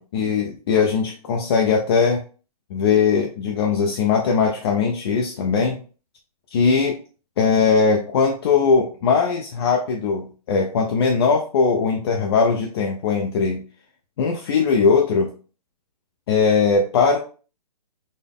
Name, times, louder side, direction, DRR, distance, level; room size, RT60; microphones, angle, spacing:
voice 1, 0.0-2.2 2.7-5.8 6.5-7.0 7.4-13.6 14.2-15.3 16.3-17.2, left 5 dB, 40° left, 1 dB, 0.5 m, -20 dB
4.1 x 2.0 x 3.5 m, 0.37 s
hypercardioid pair, 150°, 21 cm